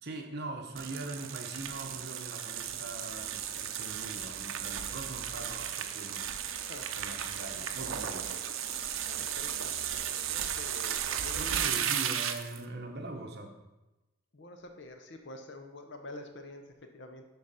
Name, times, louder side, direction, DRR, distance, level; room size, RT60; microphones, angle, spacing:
voice 1, 0.0-6.3 7.0-8.3 11.4-13.6, right 2 dB, 50° right, 4 dB, 0.9 m, -42 dB
sound 1, 0.8-12.6, right 9 dB, 75° right, 0.6 m, -35 dB
voice 2, 9.1-11.6 14.3-17.2, left 2 dB, 60° left, 6 dB, 0.8 m, -47 dB
11.5 x 4.1 x 4.2 m, 1.0 s
head